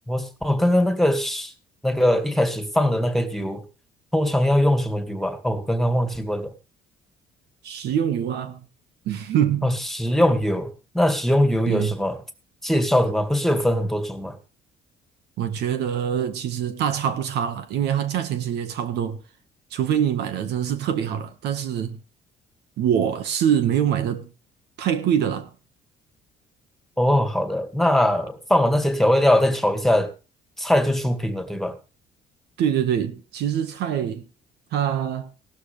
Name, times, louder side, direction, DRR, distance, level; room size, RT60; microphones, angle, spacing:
voice 1, 0.1-1.5 1.8-3.6 4.1-6.5 9.6-12.2 12.6-14.4 27.0-30.1 30.6-31.8, left 1 dB, ahead, 2.2 m, -21 dB
voice 2, 7.6-8.6 9.0-9.8 11.7-11.9 15.4-19.2 19.7-22.0 22.8-24.3 24.8-25.5 32.6-34.3 34.7-35.3, right 9 dB, 75° right, 1.7 m, -24 dB
16.5 x 12.5 x 3.4 m
cardioid pair, 110°, 17 cm